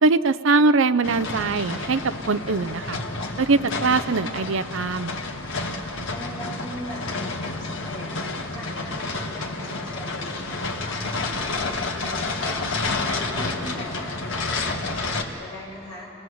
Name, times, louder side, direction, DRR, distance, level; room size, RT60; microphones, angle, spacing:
voice 1, 0.0-2.0 2.3-3.0 3.4-5.1, right 3 dB, 65° right, 12 dB, 0.6 m, -21 dB
sound 1, 1.0-15.2, left 3 dB, 60° left, 1.9 m, -30 dB
voice 2, 6.1-8.1 8.5-11.1 11.6-12.8 13.1-16.1, left 1 dB, 20° left, -6 dB, 7.5 m, -40 dB
27.0 x 20.0 x 8.0 m, 2.8 s
head